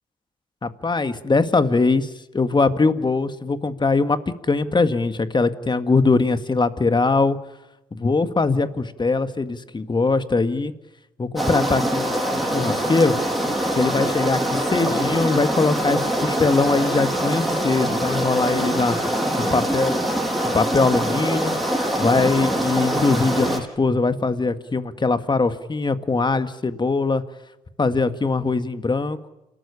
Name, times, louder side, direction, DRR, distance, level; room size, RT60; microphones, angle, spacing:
voice 1, 0.6-7.4 7.9-10.7 11.2-13.2 13.7-20.0 20.5-21.6 22.0-27.2 27.8-29.3, left 3 dB, 30° left, 10 dB, 1.9 m, -21 dB
sound 1, 11.4-23.6, right 1 dB, ahead, 7.4 m, -24 dB
28.5 x 14.0 x 10.0 m, 0.97 s
supercardioid pair, 55°, 15 cm